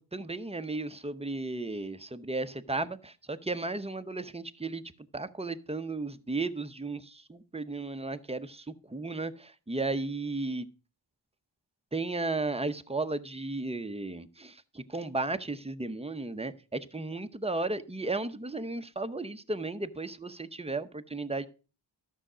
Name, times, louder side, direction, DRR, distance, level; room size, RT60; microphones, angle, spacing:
voice 1, 0.0-4.8 5.1-10.7 11.9-21.5, right 3 dB, 15° right, 0.7 m, -34 dB
12.5 x 6.5 x 5.0 m
wide cardioid pair, 45°, 45 cm